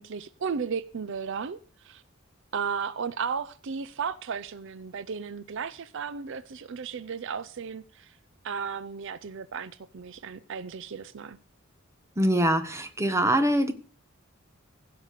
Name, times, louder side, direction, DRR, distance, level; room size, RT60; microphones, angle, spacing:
voice 1, 0.0-2.0 2.5-8.2 8.4-11.4, right 6 dB, 60° right, 0.5 m, -34 dB
voice 2, 12.2-13.7, right 1 dB, 15° right, 1.2 m, -23 dB
16.0 x 6.0 x 6.6 m
head